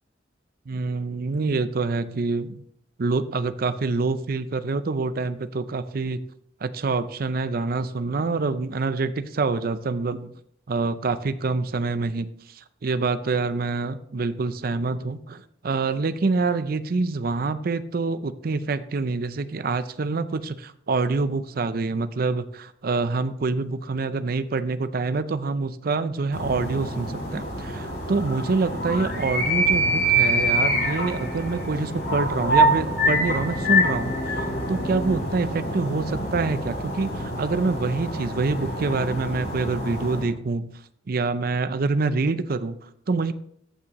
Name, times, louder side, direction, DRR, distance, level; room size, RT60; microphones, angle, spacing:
voice 1, 0.7-2.6 3.0-6.2 6.6-10.3 10.7-34.4 34.7-40.8 41.1-43.3, right 3 dB, 55° right, 13 dB, 0.5 m, -26 dB
sound 1, 26.3-40.3, right 1 dB, 65° left, 3.4 m, -25 dB
13.5 x 6.1 x 3.0 m, 0.69 s
head